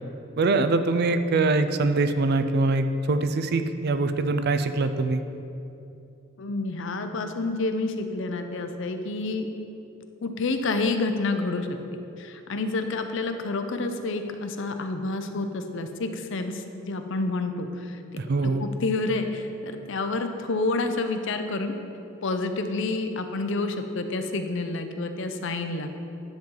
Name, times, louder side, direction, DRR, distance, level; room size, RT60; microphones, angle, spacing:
voice 1, 0.4-5.2 18.2-18.6, right 3 dB, 50° right, 10 dB, 0.4 m, -23 dB
voice 2, 6.4-9.5 10.2-11.7 12.2-18.0 18.4-21.7 22.2-25.9, left 3 dB, 65° left, 7 dB, 0.6 m, -29 dB
10.5 x 7.1 x 3.9 m, 2.8 s
head